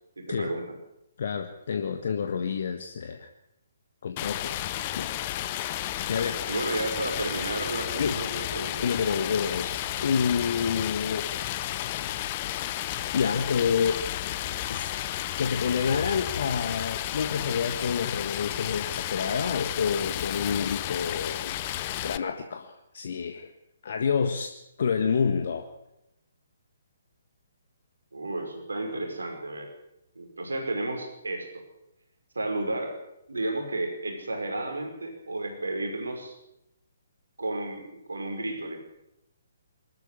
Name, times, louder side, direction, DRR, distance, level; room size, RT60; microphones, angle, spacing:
voice 1, 0.2-0.8 6.5-8.9 28.1-29.7 30.2-31.6 32.3-33.0 33.3-36.3 37.4-38.8, right 2 dB, 70° right, 4 dB, 5.5 m, -32 dB
voice 2, 1.2-3.3 4.0-5.1 5.8-6.4 8.0-8.2 8.8-11.3 12.9-14.0 14.7-14.9 15.4-21.5 22.0-23.5 23.8-25.7, left 6 dB, 50° left, 7 dB, 1.5 m, -28 dB
Stream, 4.2-22.2, left 13 dB, 30° left, 0.9 m, -32 dB
23.5 x 13.5 x 10.0 m, 0.84 s
figure-of-eight pair, 130°, 0 cm